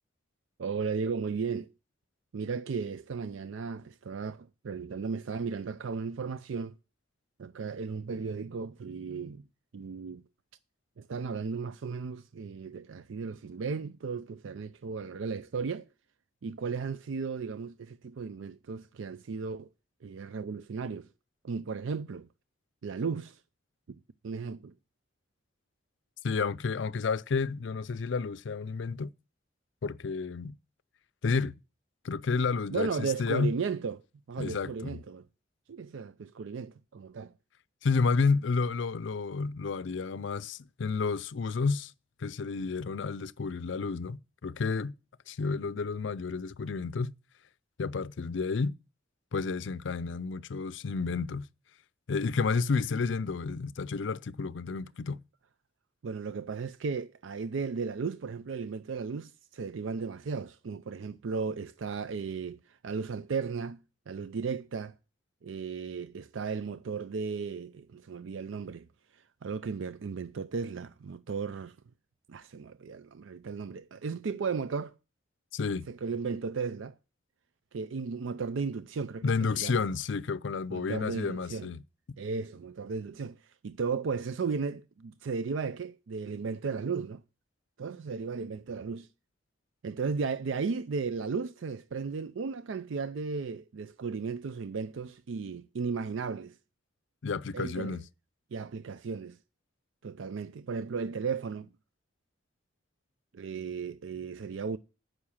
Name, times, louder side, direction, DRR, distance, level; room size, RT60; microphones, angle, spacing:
voice 1, 0.6-1.7 2.3-6.8 7.4-9.4 9.7-10.2 11.0-15.9 16.4-19.7 20.0-21.1 21.4-22.3 22.8-23.4 24.2-24.7 32.7-35.2 35.7-37.3 56.0-65.0 65.4-71.8 72.3-74.9 75.9-76.9 77.7-79.8 80.7-81.7 82.2-87.2 87.8-89.1 89.8-96.6 97.5-98.0 98.5-99.4 100.0-101.7 103.3-104.8, right 5 dB, 70° right, 0.4 m, -35 dB
voice 2, 26.2-29.1 29.8-30.5 31.2-31.5 32.0-33.5 34.4-35.0 37.8-41.9 42.2-44.9 45.3-47.1 47.8-48.8 49.3-51.5 52.1-55.2 75.5-75.9 79.2-81.8 97.2-98.0, left 4 dB, 65° left, 0.5 m, -31 dB
9.7 x 6.4 x 7.1 m
head